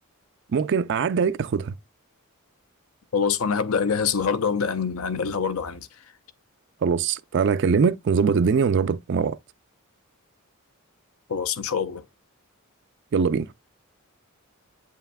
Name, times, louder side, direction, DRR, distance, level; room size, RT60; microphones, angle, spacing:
voice 1, 0.5-1.7 6.8-9.4 13.1-13.5, right 6 dB, 55° right, 0.4 m, -22 dB
voice 2, 3.1-5.9 11.3-12.0, left 6 dB, 75° left, 0.6 m, -25 dB
7.9 x 5.6 x 2.2 m
head